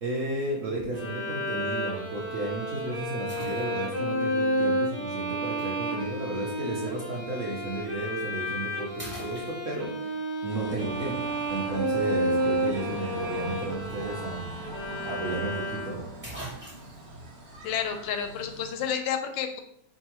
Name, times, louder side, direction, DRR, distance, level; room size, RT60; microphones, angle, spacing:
voice 1, 0.0-9.9 10.4-14.5 15.0-16.0, right 2 dB, 60° right, -2 dB, 0.9 m, -33 dB
sound 1, 0.8-1.1 1.8-1.9 3.3-4.1 5.6-5.7 7.9-8.0 8.5-8.7 9.0-10.1 14.2-14.3 14.6-14.7 15.7-15.8 16.2-17.1, right 1 dB, 5° right, 1.1 m, -43 dB
Bowed string instrument, 0.9-16.2, equal, 45° right, 0.5 m, -31 dB
sound 2, 10.5-18.9, right 1 dB, 75° right, 1.6 m, -43 dB
voice 2, 17.6-19.6, left 8 dB, 90° left, 6 dB, 1.3 m, -30 dB
4.6 x 2.7 x 2.9 m, 0.71 s
omnidirectional pair, 2.0 m